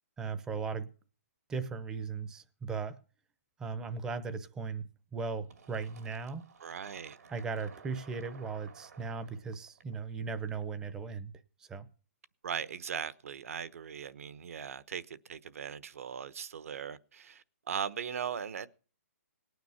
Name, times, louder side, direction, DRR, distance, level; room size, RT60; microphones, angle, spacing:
voice 1, 0.2-0.9 1.5-3.0 3.6-4.9 5.1-6.4 7.3-11.3 11.7-11.9, right 5 dB, 5° right, 0.7 m, -37 dB
Fill (with liquid), 5.5-10.9, right 6 dB, 80° right, 2.6 m, -55 dB
voice 2, 6.6-7.2 12.4-18.7, right 7 dB, 60° right, 1.0 m, -39 dB
19.0 x 9.4 x 5.7 m
hypercardioid pair, 170°, 9 cm